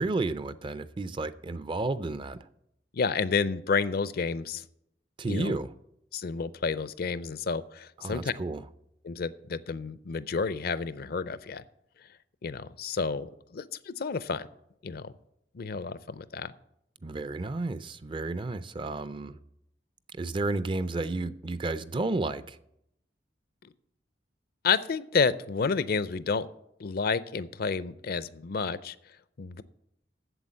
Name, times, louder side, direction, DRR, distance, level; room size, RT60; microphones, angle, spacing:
voice 1, 0.0-2.5 5.2-5.7 8.0-8.6 17.0-19.4 20.1-22.6, right 2 dB, 30° right, 0.4 m, -32 dB
voice 2, 2.9-4.6 5.2-5.6 6.1-8.3 9.0-11.6 12.0-12.1 12.4-14.5 14.8-15.1 15.5-16.5 23.6-23.7 24.6-26.5 26.8-29.0 29.4-29.6, left 5 dB, 60° left, 0.5 m, -30 dB
8.0 x 7.4 x 7.5 m
head